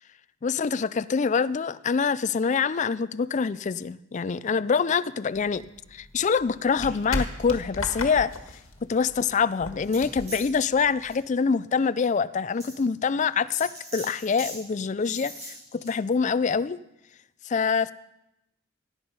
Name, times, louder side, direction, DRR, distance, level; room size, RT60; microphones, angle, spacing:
voice 1, 0.4-5.6 5.9-8.3 8.9-16.8 17.5-17.9, left 5 dB, 35° left, 16 dB, 0.4 m, -25 dB
sound 1, 5.3-11.3, left 2 dB, 85° left, 1.7 m, -36 dB
sound 2, 9.8-10.5 11.0-11.1 11.8-11.9 12.6-12.8 13.5-14.6 15.0-15.9, equal, 35° right, 6.0 m, -40 dB
17.0 x 8.8 x 5.4 m, 0.89 s
head